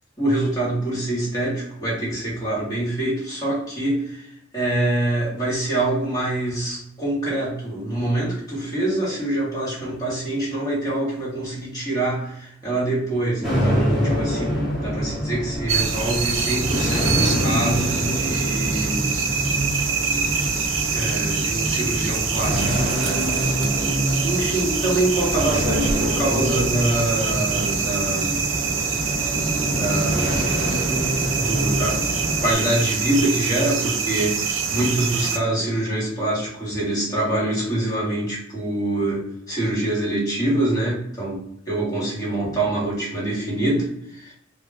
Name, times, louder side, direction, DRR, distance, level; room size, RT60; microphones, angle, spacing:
voice 1, 0.2-19.1 20.3-23.2 24.2-28.5 29.6-30.7 31.4-32.1 32.4-44.3, right 1 dB, 20° left, -6 dB, 1.1 m, -25 dB
sound 1, 13.4-32.6, equal, ahead, 0.8 m, -25 dB
sound 2, 15.7-35.4, right 6 dB, 70° right, 0.4 m, -25 dB
2.2 x 2.1 x 3.3 m, 0.72 s
head